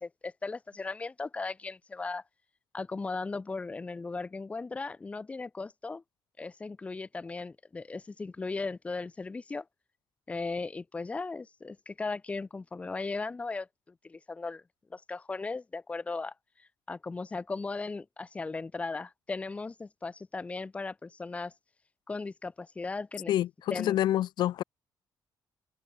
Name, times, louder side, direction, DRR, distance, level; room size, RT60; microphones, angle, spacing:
voice 1, 0.0-2.2 2.7-6.0 6.4-9.7 10.3-14.6 14.9-16.3 16.9-21.5 22.1-23.3 23.7-24.0, left 3 dB, 15° left, 0.3 m, -37 dB
voice 2, 23.3-24.6, left 12 dB, 75° left, 0.5 m, -27 dB
cardioid pair, 135°, 8 cm